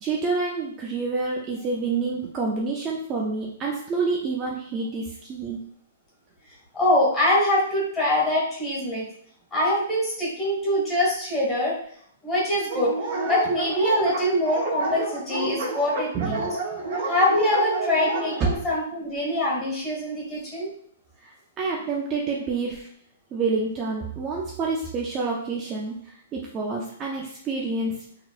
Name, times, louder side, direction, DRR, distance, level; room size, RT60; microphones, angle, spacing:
voice 1, 0.0-5.6 16.1-16.5 21.2-22.9 23.3-28.0, right 4 dB, 20° right, -2 dB, 0.4 m, -28 dB
voice 2, 6.7-9.0 9.5-11.8 12.2-12.9 13.2-16.4 17.1-20.7, left 1 dB, 15° left, -6 dB, 1.5 m, -24 dB
Dog, 12.7-18.6, right 3 dB, 45° right, 0.8 m, -29 dB
4.0 x 2.8 x 2.4 m, 0.63 s
hypercardioid pair, 165°, 0 cm